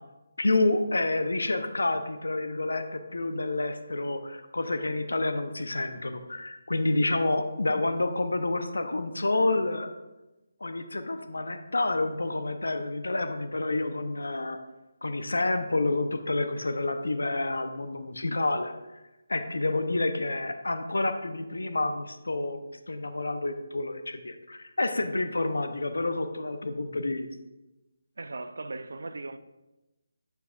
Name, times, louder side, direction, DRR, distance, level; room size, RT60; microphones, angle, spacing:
voice 1, 0.4-9.9 10.6-14.6 15.0-18.8 19.3-22.6 22.9-27.3, left 2 dB, 80° left, 0.7 m, -29 dB
voice 2, 28.2-29.4, right 3 dB, 70° right, 0.5 m, -38 dB
12.5 x 4.6 x 2.5 m
figure-of-eight pair, 155°, 0 cm